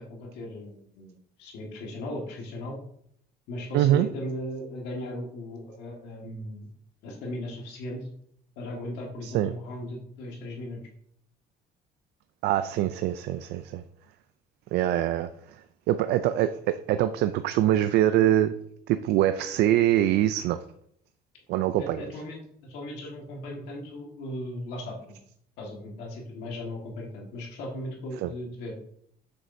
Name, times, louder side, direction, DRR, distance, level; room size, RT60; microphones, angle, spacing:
voice 1, 0.0-2.8 3.5-6.7 7.0-8.1 8.6-10.8 21.8-25.2 25.6-28.8, left 1 dB, 85° left, -1 dB, 1.8 m, -37 dB
voice 2, 3.7-4.1 9.2-9.5 12.4-13.8 14.7-15.3 15.9-18.6 18.9-20.6 21.5-22.0 28.2-28.3, right 12 dB, 80° right, 11 dB, 0.4 m, -24 dB
7.6 x 6.4 x 2.7 m, 0.67 s
cardioid pair, 110°, 17 cm